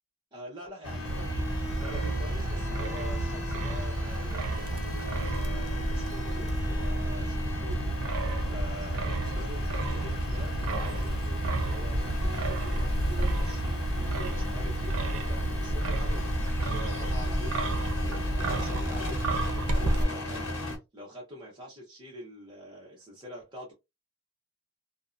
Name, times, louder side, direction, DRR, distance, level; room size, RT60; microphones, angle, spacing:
voice 1, 0.3-16.2 16.6-19.2 19.5-20.6 20.9-23.7, equal, 20° right, 0.6 m, -45 dB
sound 1, 0.8-20.8, left 1 dB, 70° left, 1.0 m, -36 dB
Wind, 1.0-20.0, right 1 dB, 80° right, 0.5 m, -30 dB
2.6 x 2.0 x 2.3 m
head